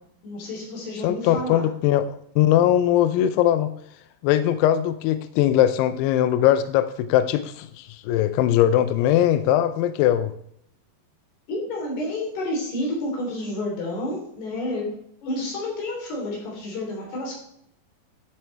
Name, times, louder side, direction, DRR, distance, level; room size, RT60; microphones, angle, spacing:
voice 1, 0.2-1.7 11.5-14.9 15.2-17.4, left 1 dB, 65° left, -2 dB, 5.4 m, -30 dB
voice 2, 1.0-3.7 4.2-10.3, left 12 dB, 85° left, 11 dB, 2.4 m, -20 dB
12.0 x 7.7 x 3.3 m, 0.70 s
omnidirectional pair, 5.0 m